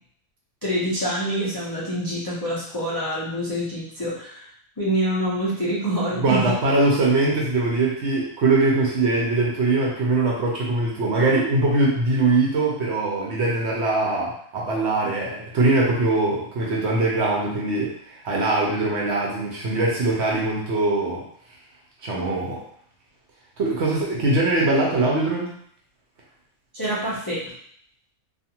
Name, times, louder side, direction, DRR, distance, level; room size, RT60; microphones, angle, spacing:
voice 1, 0.6-4.5 4.8-6.6 26.7-27.4, right 1 dB, 35° left, -9 dB, 0.3 m, -26 dB
voice 2, 6.2-21.2 22.0-22.6 23.6-25.5, right 2 dB, 60° right, -3 dB, 0.8 m, -22 dB
2.4 x 2.4 x 2.8 m, 0.63 s
omnidirectional pair, 1.5 m